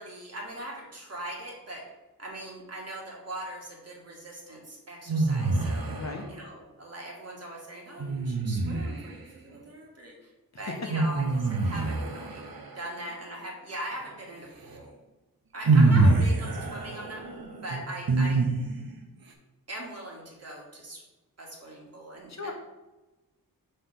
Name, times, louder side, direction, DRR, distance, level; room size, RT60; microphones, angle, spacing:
voice 1, 0.0-1.8 2.2-5.9 6.3-10.3 10.6-12.4 12.7-14.9 15.5-17.2 17.6-18.4 19.7-21.0 21.4-22.5, right 1 dB, 45° right, -2 dB, 1.8 m, -40 dB
sound 1, 5.1-6.2 8.0-9.2 10.9-12.9 14.7-14.8 15.7-18.9, right 3 dB, 75° right, 0.9 m, -25 dB
voice 2, 6.0-6.3 16.0-16.2 22.3-22.5, left 3 dB, 50° left, 3 dB, 1.0 m, -36 dB
5.6 x 3.3 x 5.7 m, 1.1 s
wide cardioid pair, 90°, 36 cm